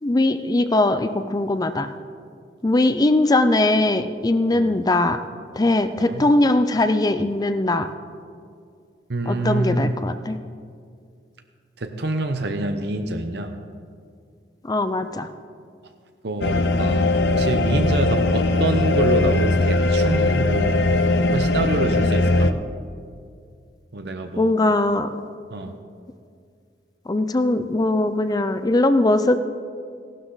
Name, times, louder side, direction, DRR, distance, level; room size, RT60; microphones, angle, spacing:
voice 1, 0.0-1.9 2.6-5.2 5.6-7.9 9.2-10.4 14.6-15.3 24.4-25.1 27.1-29.4, left 2 dB, 20° left, 10 dB, 0.5 m, -20 dB
voice 2, 9.1-9.9 11.8-13.5 16.2-20.8 21.2-22.5 23.9-24.5 25.5-25.8, right 2 dB, 65° right, 6 dB, 0.8 m, -26 dB
sound 1, 16.4-22.5, left 2 dB, 70° left, 0.6 m, -20 dB
16.0 x 12.0 x 4.0 m, 2.2 s
head